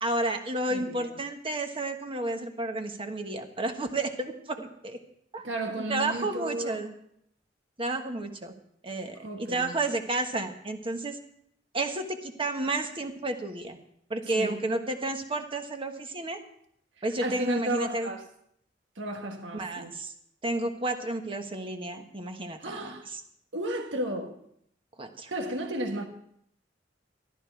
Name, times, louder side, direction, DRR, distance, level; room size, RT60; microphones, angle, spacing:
voice 1, 0.0-5.0 5.3-5.4 5.8-6.9 7.8-8.5 8.8-11.2 11.7-13.8 14.1-16.4 17.0-18.1 19.5-20.1 20.4-23.2 25.0-25.3, right 2 dB, 30° right, 1.3 m, -31 dB
voice 2, 0.7-1.1 5.4-6.8 9.2-9.8 14.3-14.7 17.2-18.2 19.0-19.9 22.6-23.1 23.5-24.4 25.3-26.0, right 1 dB, 85° right, 1.5 m, -33 dB
13.5 x 12.0 x 4.6 m
head